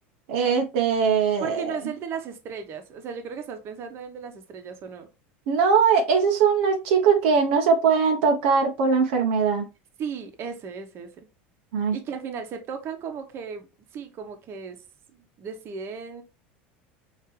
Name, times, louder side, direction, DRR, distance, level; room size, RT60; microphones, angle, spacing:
voice 1, 0.3-1.8 5.5-9.7 11.7-12.0, right 6 dB, 75° right, 0.8 m, -21 dB
voice 2, 1.4-5.1 10.0-11.3 11.9-14.8 15.1-16.2, right 6 dB, 45° right, 1.1 m, -36 dB
4.6 x 2.9 x 3.1 m
hypercardioid pair, 100°, 6 cm